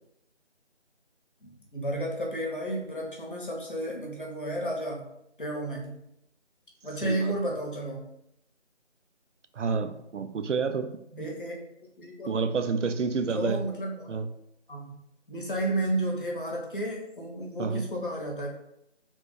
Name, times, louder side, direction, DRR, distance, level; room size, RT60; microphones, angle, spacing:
voice 1, 1.4-5.1 5.4-6.0 6.8-8.1 11.2-11.6 12.0-12.3 13.2-14.1 14.7-14.9 15.3-18.5, right 1 dB, 45° left, 1.0 m, -32 dB
voice 2, 7.0-7.3 9.6-11.3 12.3-13.6 14.1-14.3 17.6-17.8, right 5 dB, 85° right, 0.5 m, -29 dB
3.6 x 2.3 x 4.1 m
figure-of-eight pair, 170°, 35 cm